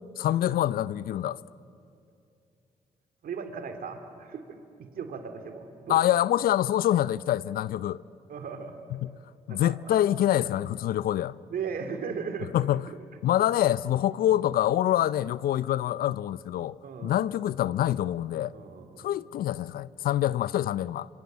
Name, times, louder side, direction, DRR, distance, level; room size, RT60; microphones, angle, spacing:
voice 1, 0.2-1.4 5.9-8.0 8.9-9.1 9.5-11.4 12.5-12.8 13.2-18.5 19.0-21.1, left 12 dB, 70° left, 0.5 m, -26 dB
voice 2, 3.2-6.0 8.3-8.8 9.5-10.0 11.5-12.5 16.8-17.3 18.5-19.0, right 6 dB, 65° right, 2.6 m, -37 dB
26.0 x 25.5 x 7.5 m
hypercardioid pair, 45°, 16 cm